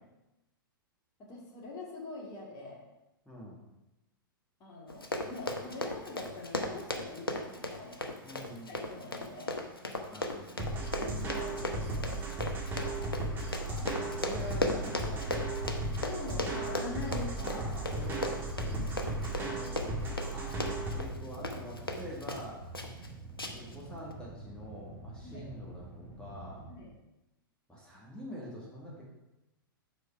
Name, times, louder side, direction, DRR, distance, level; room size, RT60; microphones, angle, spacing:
voice 1, 1.3-2.8 4.6-8.1 8.7-9.7 10.9-12.2 15.8-17.8 18.7-19.0 25.2-25.4 26.7-26.9, left 2 dB, 30° left, -2 dB, 2.1 m, -44 dB
voice 2, 3.3-3.6 8.2-9.1 10.1-10.7 13.0-15.7 17.1-19.0 19.4-20.6 20.9-22.6 23.5-26.6 27.7-29.0, left 1 dB, 5° left, -6 dB, 1.8 m, -46 dB
Run, 4.9-22.5 22.7-23.1 23.4-23.8 24.1-24.2, left 2 dB, 85° left, 0.8 m, -37 dB
sound 1, 10.6-21.0, right 2 dB, 15° right, 1.8 m, -35 dB
sound 2, 17.6-26.7, right 2 dB, 55° left, 2.1 m, -47 dB
5.2 x 4.5 x 5.9 m, 0.96 s
figure-of-eight pair, 105°, 12 cm